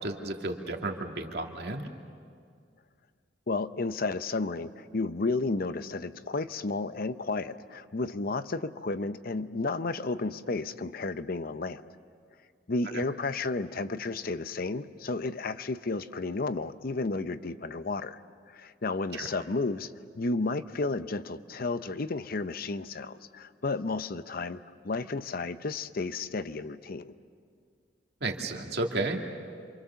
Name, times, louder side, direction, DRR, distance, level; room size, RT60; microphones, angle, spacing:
voice 1, 0.0-1.8 19.1-19.3 28.2-29.2, right 2 dB, 65° right, 2 dB, 2.2 m, -32 dB
voice 2, 3.5-11.9 12.7-18.2 18.5-27.1, left 3 dB, 55° left, 12 dB, 0.7 m, -32 dB
28.0 x 26.0 x 7.0 m, 2.2 s
head